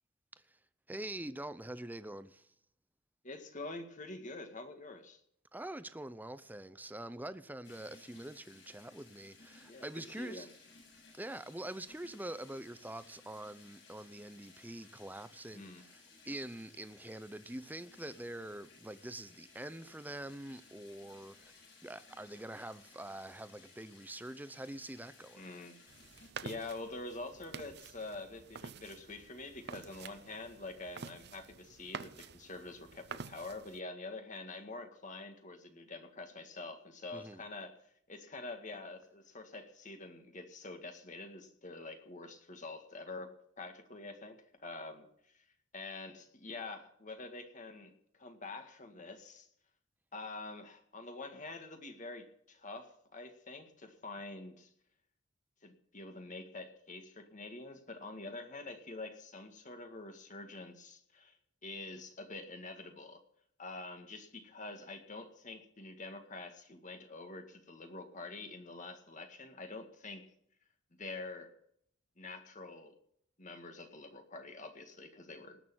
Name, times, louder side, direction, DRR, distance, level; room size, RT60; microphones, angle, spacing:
voice 1, 0.9-2.5 5.5-10.5 11.1-25.5 37.1-37.4, right 1 dB, 10° right, 0.7 m, -45 dB
voice 2, 3.2-5.2 9.7-10.5 15.5-15.8 25.4-25.7 26.4-37.8 38.1-45.4 45.7-47.9 48.2-49.5 50.1-54.7 55.6-61.4 61.6-63.2 63.6-70.3 71.0-71.5 72.2-72.9 73.4-75.6, left 3 dB, 40° left, 2.0 m, -46 dB
sound 1, 7.6-26.3, left 3 dB, 60° left, 7.4 m, -60 dB
sound 2, 25.9-33.8, right 5 dB, 55° right, 0.7 m, -49 dB
19.0 x 6.7 x 8.8 m
head